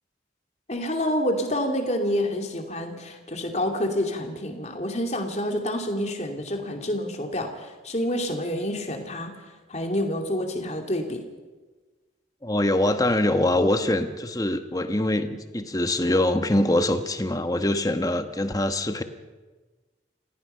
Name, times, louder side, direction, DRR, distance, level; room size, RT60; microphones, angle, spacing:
voice 1, 0.7-11.2, left 1 dB, 40° left, 3 dB, 2.6 m, -28 dB
voice 2, 12.4-19.0, left 1 dB, 20° left, 8 dB, 1.2 m, -23 dB
29.5 x 16.5 x 5.7 m, 1.3 s
head